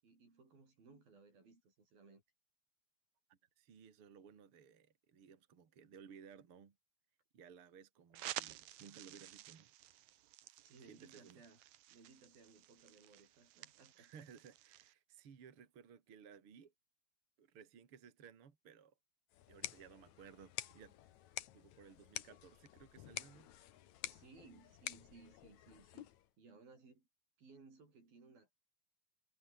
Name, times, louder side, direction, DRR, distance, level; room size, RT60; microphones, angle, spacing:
voice 1, 0.0-2.2 10.6-14.2 24.0-26.1 26.4-27.1 27.4-28.5, right 4 dB, 90° right, 9.4 m, -62 dB
voice 2, 3.3-6.8 7.3-9.7 10.8-11.4 14.0-16.7 17.4-18.9 19.5-20.9 21.5-23.5, right 7 dB, 40° right, 3.1 m, -59 dB
sound 1, 8.1-14.9, right 14 dB, 65° right, 2.0 m, -52 dB
sound 2, 19.3-26.3, left 12 dB, 65° left, 2.3 m, -49 dB
omnidirectional pair, 4.1 m